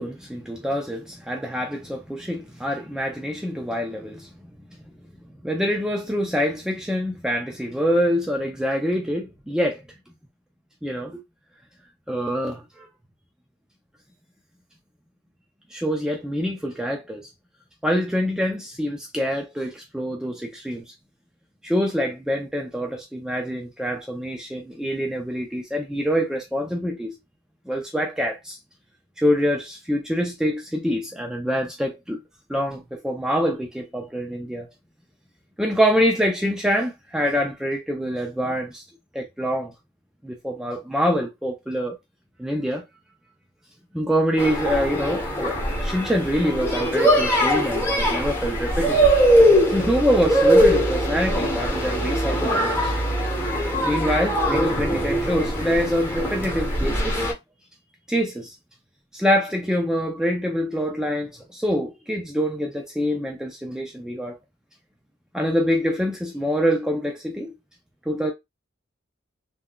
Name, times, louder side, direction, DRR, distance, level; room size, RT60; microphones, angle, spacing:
voice 1, 0.0-4.3 5.4-9.8 10.8-11.2 12.1-12.9 15.7-17.3 17.8-20.8 21.6-27.2 27.7-28.6 29.2-32.2 32.5-34.7 35.6-38.8 39.1-39.7 40.2-42.0 42.4-42.8 43.9-49.1 49.7-52.9 53.8-57.3 58.1-58.5 59.1-64.4 65.3-67.5 68.1-68.3, equal, 5° right, 0.4 m, -25 dB
sound 1, 44.4-57.3, equal, 10° left, 1.0 m, -21 dB
3.6 x 2.2 x 2.2 m
head